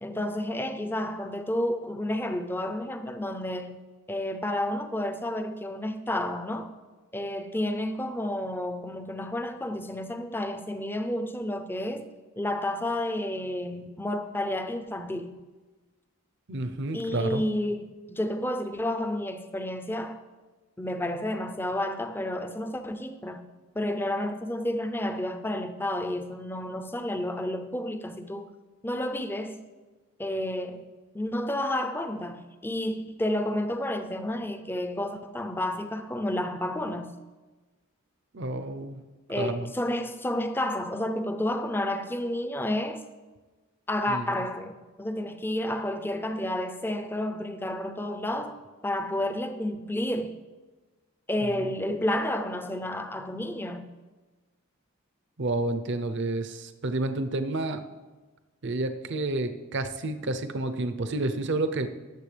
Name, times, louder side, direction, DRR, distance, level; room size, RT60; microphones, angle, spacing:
voice 1, 0.0-3.8 4.1-6.7 7.1-12.1 12.4-15.4 16.9-20.2 20.8-23.4 23.7-28.5 28.8-29.6 30.2-37.1 39.3-43.0 43.9-48.6 48.8-50.4 51.3-53.9, left 1 dB, 10° left, 0.5 m, -31 dB
voice 2, 16.5-17.4 38.3-39.0 39.4-39.7 44.1-44.3 51.4-51.7 55.4-57.8 58.6-61.9, right 2 dB, 55° right, 0.6 m, -30 dB
18.5 x 7.4 x 3.3 m
head